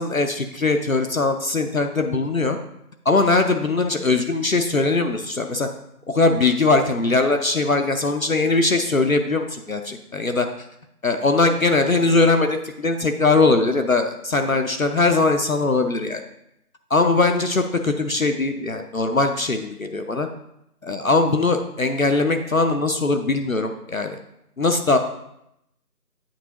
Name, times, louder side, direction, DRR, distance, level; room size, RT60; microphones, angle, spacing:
voice 1, 0.0-2.6 3.1-5.7 6.1-10.5 11.0-16.2 16.9-20.3 20.8-24.2 24.6-25.0, left 3 dB, 60° left, 6 dB, 0.6 m, -20 dB
8.7 x 4.5 x 2.9 m, 0.79 s
figure-of-eight pair, 165°, 48 cm